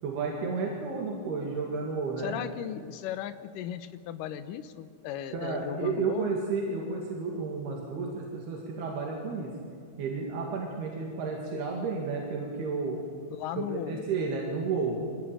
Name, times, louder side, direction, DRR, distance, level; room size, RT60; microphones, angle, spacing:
voice 1, 0.0-2.4 5.3-9.5 10.0-13.0 13.6-15.0, right 4 dB, 85° right, 0 dB, 4.2 m, -32 dB
voice 2, 2.2-6.3 13.3-14.1, left 10 dB, 70° left, 12 dB, 2.3 m, -37 dB
23.5 x 17.0 x 8.9 m, 2.2 s
omnidirectional pair, 4.4 m